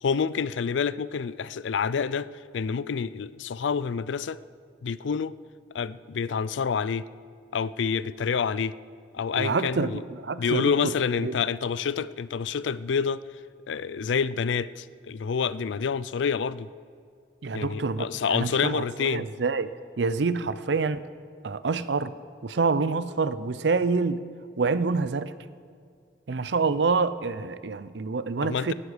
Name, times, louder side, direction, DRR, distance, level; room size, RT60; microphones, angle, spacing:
voice 1, 0.0-4.4 4.8-5.3 5.7-7.0 7.5-8.8 9.1-10.0 10.4-13.3 13.7-16.7 17.5-19.3 28.4-28.7, left 6 dB, 90° left, 18 dB, 0.4 m, -28 dB
voice 2, 9.3-10.7 11.2-11.4 17.4-21.0 21.4-22.1 22.4-24.2 24.6-25.3 26.3-28.7, right 4 dB, 75° right, 15 dB, 0.6 m, -27 dB
17.5 x 11.0 x 5.0 m, 2.2 s
head